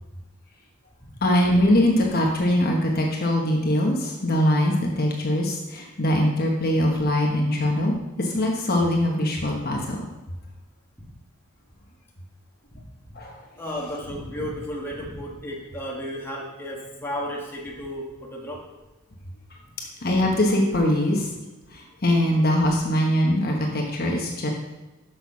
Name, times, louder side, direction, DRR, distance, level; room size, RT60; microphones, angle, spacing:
voice 1, 1.2-10.0 13.1-13.4 20.0-21.3 21.7-24.5, left 1 dB, 45° left, 0 dB, 1.2 m, -22 dB
voice 2, 13.6-18.7, equal, 10° left, -3 dB, 1.5 m, -33 dB
6.8 x 6.3 x 5.6 m, 1.1 s
head